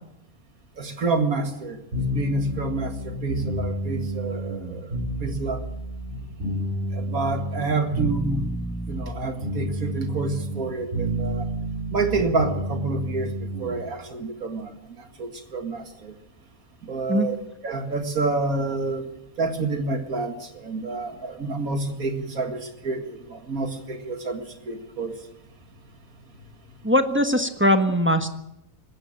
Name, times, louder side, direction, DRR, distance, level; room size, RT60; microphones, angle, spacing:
voice 1, 0.8-5.6 6.9-8.5 8.9-11.5 11.9-16.2 16.8-17.4 17.6-19.1 19.4-25.2, right 3 dB, 75° right, 7 dB, 2.4 m, -28 dB
sound 1, 1.9-13.8, right 1 dB, 55° right, 7.4 m, -30 dB
voice 2, 26.8-28.3, equal, 10° right, 8 dB, 1.1 m, -20 dB
19.5 x 16.0 x 8.8 m, 0.84 s
omnidirectional pair, 1.5 m